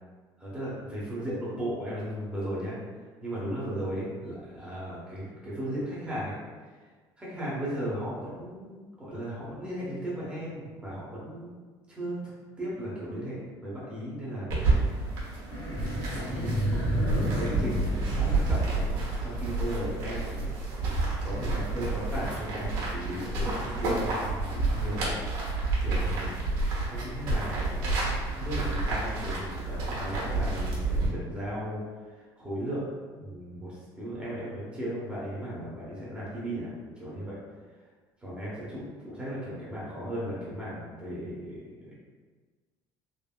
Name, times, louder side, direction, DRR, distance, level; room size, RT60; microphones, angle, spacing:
voice 1, 0.4-2.8 3.2-6.3 7.2-11.5 11.9-14.5 15.7-16.6 17.1-18.9 19.2-20.5 21.2-25.2 25.8-26.4 26.9-37.4 38.2-41.9, equal, 10° right, -9 dB, 0.8 m, -36 dB
sound 1, 14.5-31.1, right 3 dB, 90° right, 0.9 m, -30 dB
sound 2, 15.5-19.0, equal, 50° left, 1.1 m, -30 dB
3.6 x 2.0 x 2.2 m, 1.4 s
cardioid pair, 135°, 9 cm